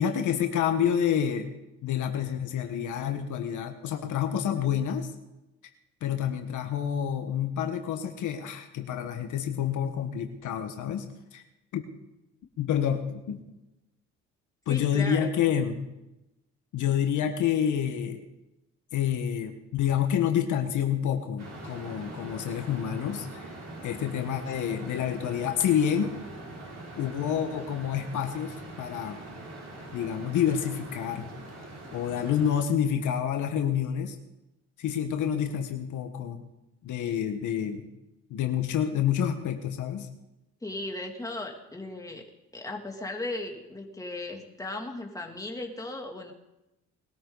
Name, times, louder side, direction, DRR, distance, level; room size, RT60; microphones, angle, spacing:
voice 1, 0.0-1.5 1.8-5.1 6.0-11.4 11.7-11.8 12.6-13.4 14.7-15.8 16.7-18.2 18.9-23.4 23.8-26.2 26.9-29.2 29.9-31.3 31.9-34.2 34.8-36.4 36.8-37.9 38.3-40.1, left 9 dB, 80° left, 5 dB, 1.6 m, -28 dB
voice 2, 14.7-15.5 40.6-42.2 42.5-46.3, left 2 dB, 10° left, 1 dB, 2.8 m, -37 dB
sound 1, 21.4-32.6, right 2 dB, 60° right, 5.5 m, -43 dB
21.0 x 13.0 x 4.1 m, 0.93 s
cardioid pair, 90°, 30 cm